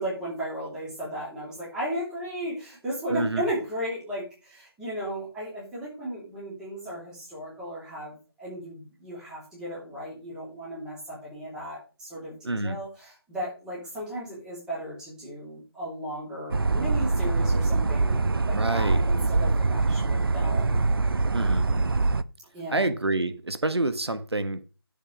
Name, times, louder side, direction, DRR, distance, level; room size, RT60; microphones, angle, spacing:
voice 1, 0.0-20.8 22.5-22.9, right 1 dB, 5° right, -7 dB, 3.0 m, -35 dB
voice 2, 3.1-3.4 12.4-12.8 18.5-19.0 21.3-21.7 22.7-24.6, right 2 dB, 85° right, 11 dB, 1.4 m, -27 dB
sound 1, 16.5-22.2, right 3 dB, 60° right, 0.6 m, -24 dB
10.5 x 7.3 x 4.9 m, 0.34 s
figure-of-eight pair, 165°, 13 cm